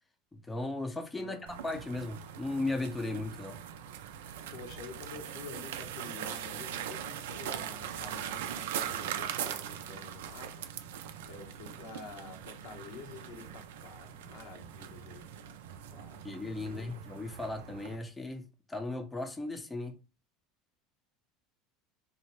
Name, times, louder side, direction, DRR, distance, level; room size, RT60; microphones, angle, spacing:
voice 1, 0.3-1.4 1.6-3.6 16.2-20.0, left 2 dB, 10° left, 0.5 m, -36 dB
sound 1, 1.5-18.0, right 9 dB, 90° right, 0.3 m, -41 dB
voice 2, 4.5-10.7 11.3-15.6 15.9-16.9, left 4 dB, 75° left, 0.9 m, -49 dB
2.7 x 2.0 x 3.0 m
supercardioid pair, 115°, 0 cm